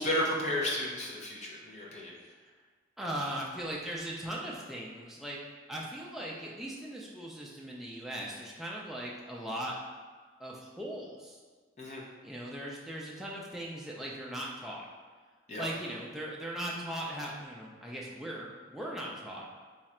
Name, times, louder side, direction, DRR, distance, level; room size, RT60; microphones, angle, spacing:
voice 1, 0.0-2.1 11.8-12.0 15.5-15.7, left 1 dB, 40° left, -3 dB, 0.6 m, -32 dB
voice 2, 3.0-5.4 5.7-9.8 10.4-11.4 12.2-14.8 15.6-19.4, right 1 dB, ahead, -4 dB, 0.4 m, -39 dB
3.1 x 2.4 x 4.2 m, 1.5 s
head